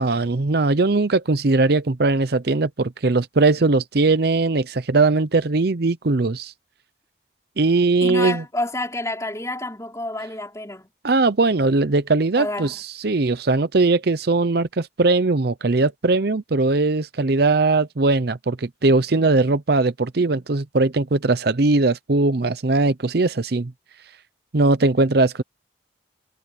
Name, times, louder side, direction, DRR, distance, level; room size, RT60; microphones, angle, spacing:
voice 1, 0.0-6.5 7.6-8.4 11.0-23.7 24.5-25.4, right 3 dB, 55° right, 0.7 m, -20 dB
voice 2, 8.0-10.9 12.4-12.8, left 2 dB, 15° left, 5.1 m, -29 dB
head